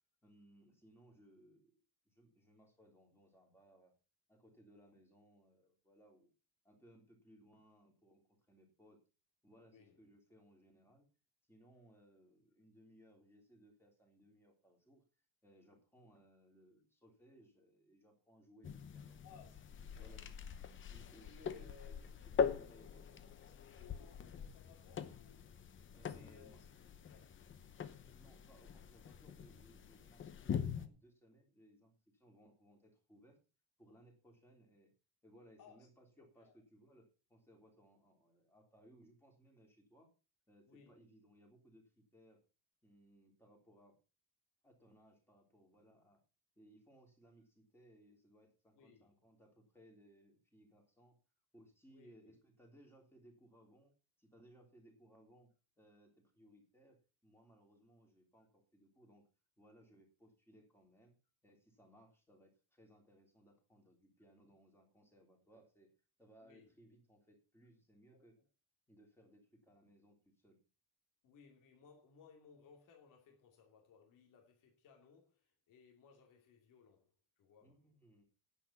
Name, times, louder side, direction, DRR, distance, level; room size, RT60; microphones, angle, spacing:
voice 1, 0.2-1.8 2.0-3.9 4.3-6.3 6.6-9.0 9.4-11.1 11.5-15.0 15.4-19.4 19.9-20.2 20.9-23.3 25.9-26.6 28.0-33.4 33.8-34.9 35.2-40.1 40.5-42.4 42.8-44.0 44.6-46.2 46.6-51.2 51.5-53.9 54.2-55.5 55.8-57.0 57.2-59.3 59.6-61.1 61.4-65.9 66.2-68.3 68.9-70.6 77.6-78.2, equal, 5° left, 3.3 m, -65 dB
sound 1, 18.6-30.9, left 7 dB, 30° left, 0.8 m, -43 dB
voice 2, 19.0-19.6 19.9-20.2 21.2-22.1 23.4-26.6 27.1-27.6 35.6-35.8 36.2-36.6 40.7-40.9 48.7-49.1 51.9-52.4 66.4-66.7 68.1-68.2 71.2-77.1 77.4-77.8, left 6 dB, 55° left, 2.9 m, -63 dB
10.0 x 8.4 x 5.7 m
cardioid pair, 180°, 38 cm